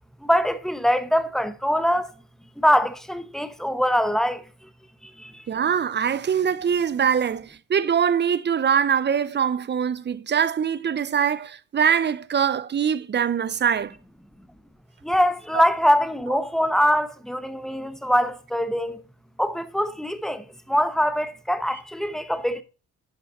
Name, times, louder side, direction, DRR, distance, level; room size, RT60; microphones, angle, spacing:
voice 1, 0.2-2.1 2.6-4.4 5.2-5.3 15.0-19.0 19.4-22.6, equal, ahead, 1.0 m, -23 dB
voice 2, 5.5-13.9 15.5-15.6, right 7 dB, 35° right, 0.6 m, -23 dB
11.0 x 5.6 x 4.1 m
cardioid pair, 90°, 30 cm